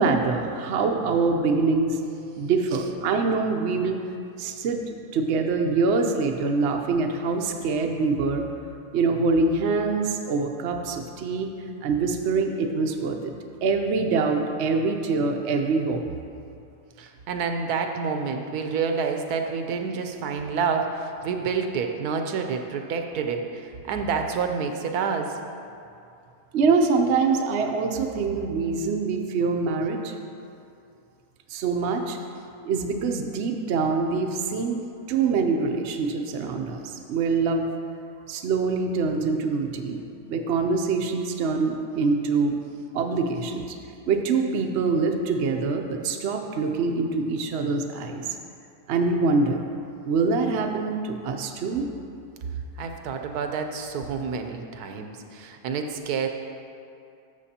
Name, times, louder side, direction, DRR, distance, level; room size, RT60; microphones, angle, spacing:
voice 1, 0.0-2.0 2.4-3.9 4.4-8.5 8.9-11.5 11.8-13.3 13.6-16.0 26.5-30.1 31.5-32.2 32.7-34.8 35.1-37.7 38.3-42.6 42.9-43.8 44.1-48.4 48.9-49.6 50.0-51.9, right 4 dB, 60° right, 4 dB, 0.7 m, -24 dB
voice 2, 17.0-25.4 52.8-56.3, right 5 dB, 75° right, 5 dB, 1.1 m, -28 dB
12.5 x 6.6 x 2.8 m, 2.5 s
omnidirectional pair, 1.7 m